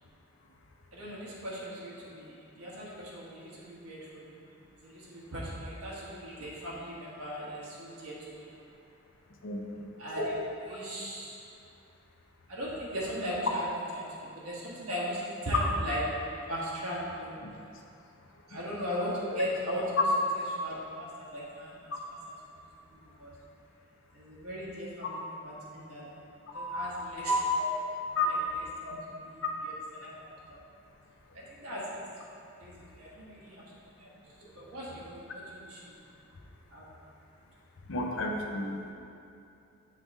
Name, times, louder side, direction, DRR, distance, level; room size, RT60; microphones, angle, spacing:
voice 1, 0.9-4.4 4.8-8.5 10.0-10.3 10.6-11.4 12.5-14.1 14.3-16.0 16.5-17.4 18.5-20.0 20.6-21.9 22.9-23.3 24.1-26.0 26.5-27.8 28.1-29.0 29.2-30.6 31.3-32.0 32.6-33.6 34.0-34.1 34.4-35.9 36.7-36.8, equal, 80° right, -7 dB, 1.4 m, -37 dB
voice 2, 9.4-9.9 26.5-26.9 28.2-28.3 29.4-29.5 37.9-38.8, left 2 dB, 60° left, 1 dB, 0.6 m, -32 dB
7.2 x 3.9 x 3.6 m, 2.6 s
head